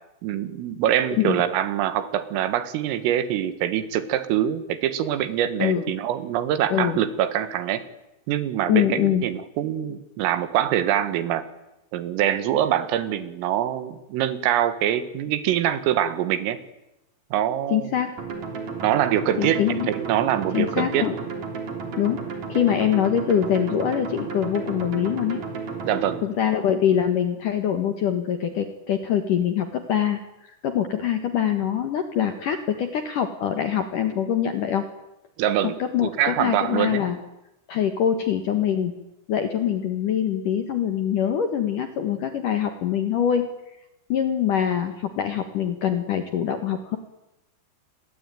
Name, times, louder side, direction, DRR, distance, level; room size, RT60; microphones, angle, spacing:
voice 1, 0.2-7.8 8.3-11.5 11.9-16.6 17.3-17.9 18.8-19.6 19.9-21.1 25.8-26.2 35.4-35.7 36.0-37.0, right 11 dB, 85° right, 12 dB, 4.4 m, -24 dB
voice 2, 8.7-9.3 17.7-18.2 19.4-19.9 20.5-21.2 22.0-22.2 22.5-25.4 26.2-34.9 35.8-37.2 37.7-38.9 39.3-43.5 44.1-47.0, left 9 dB, 65° left, 7 dB, 2.2 m, -24 dB
sound 1, 18.2-26.2, right 5 dB, 40° right, 4.4 m, -33 dB
28.5 x 22.0 x 9.3 m, 0.93 s
omnidirectional pair, 5.7 m